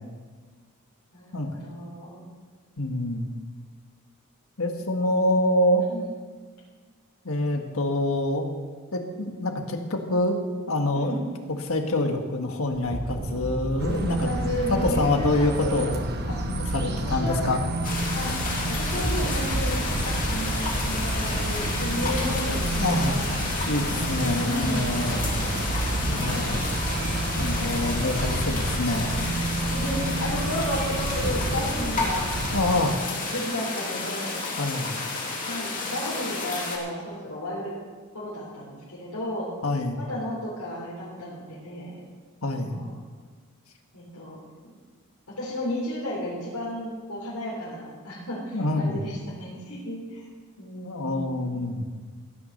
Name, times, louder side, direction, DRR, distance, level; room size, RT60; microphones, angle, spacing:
voice 1, 1.1-2.2 5.9-6.0 10.9-11.2 14.2-15.8 16.3-16.4 17.0-17.5 18.1-18.3 18.7-23.2 24.2-25.1 26.1-26.5 29.6-32.3 32.9-34.4 35.5-37.7 38.1-39.5 40.0-41.9 42.4-42.9 43.9-44.4 45.3-50.2 50.6-51.6, equal, 90° left, -7 dB, 3.6 m, -33 dB
voice 2, 2.8-3.3 4.6-5.8 7.2-8.5 8.9-10.4 10.7-11.2 11.5-14.3 14.7-16.1 16.4-17.6 22.8-23.1 23.7-25.2 26.1-26.6 27.3-29.7 30.0-30.1 32.5-33.0 34.6-34.9 39.6-40.0 42.4-42.7 48.5-49.0 50.8-51.9, left 1 dB, 70° left, 4 dB, 1.6 m, -26 dB
sound 1, 12.7-18.0 18.7-24.1 24.8-30.2 30.9-31.6, right 1 dB, 25° right, 0.9 m, -35 dB
sound 2, 13.8-32.8, right 1 dB, 45° right, 1.3 m, -30 dB
sound 3, 17.8-36.8, left 3 dB, 35° left, 3.4 m, -31 dB
15.5 x 9.6 x 6.6 m, 1.5 s
head